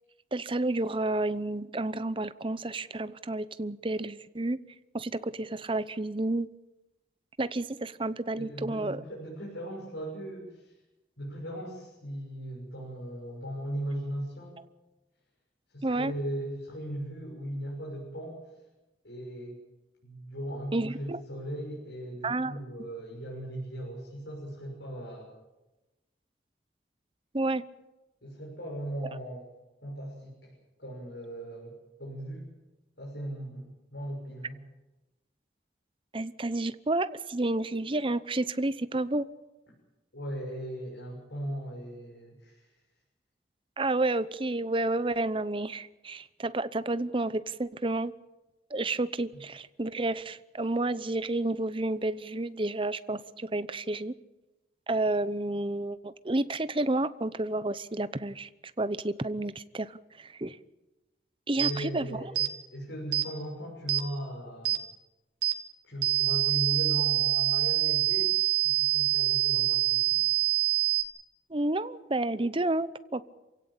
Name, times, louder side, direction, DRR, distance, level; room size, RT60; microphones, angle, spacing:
voice 1, 0.3-4.6 4.9-6.5 7.4-9.0 15.8-16.1 20.7-21.2 22.2-22.6 27.3-27.6 36.1-39.3 43.8-48.1 48.7-54.1 54.9-58.5 58.8-60.6 61.5-62.2 71.5-73.2, right 2 dB, 30° right, 14 dB, 0.8 m, -30 dB
voice 2, 8.4-10.7 11.2-14.6 15.7-18.4 19.0-19.6 20.0-25.3 28.2-29.5 29.8-30.5 30.8-32.4 33.0-34.6 40.1-42.7 61.6-64.8 65.8-70.3, right 1 dB, 85° left, -3 dB, 6.6 m, -38 dB
sound 1, 61.6-61.7 62.4-62.5 63.1-63.3 63.9-64.0 64.6-64.8 65.4-65.6 66.0-71.0, right 14 dB, 75° right, 2.2 m, -26 dB
27.5 x 17.0 x 8.5 m, 1.0 s
head